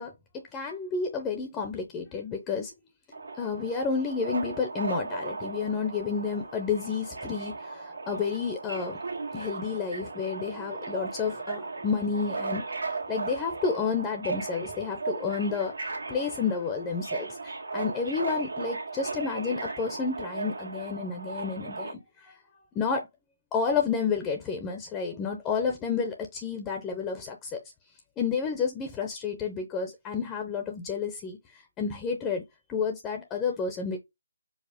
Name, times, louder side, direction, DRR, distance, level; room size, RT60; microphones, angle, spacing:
voice 1, 0.0-2.7 3.4-9.0 9.3-22.4 22.7-23.0 23.5-27.6 28.2-32.4 32.7-34.0, left 5 dB, 15° left, 0.6 m, -31 dB
Subway metro underground, 3.1-21.9, right 3 dB, 80° right, 1.3 m, -36 dB
4.7 x 2.1 x 3.5 m
figure-of-eight pair, 155°, 0 cm